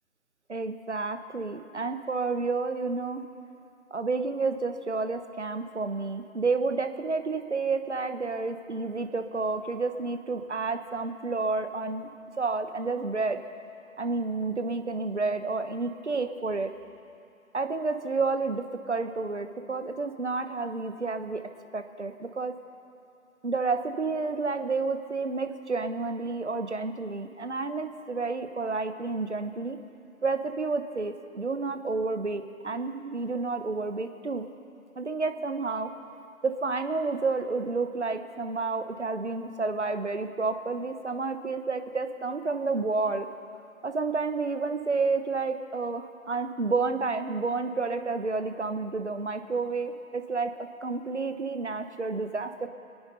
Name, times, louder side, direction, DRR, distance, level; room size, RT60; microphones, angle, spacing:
voice 1, 0.5-3.2 3.9-12.1 12.4-13.4 14.0-16.7 17.5-21.4 21.7-22.5 23.4-29.8 30.2-34.5 35.0-35.9 36.4-43.3 43.8-50.5 50.8-52.7, right 3 dB, 55° right, 8 dB, 1.1 m, -30 dB
26.5 x 9.5 x 5.4 m, 2.5 s
figure-of-eight pair, 160°, 42 cm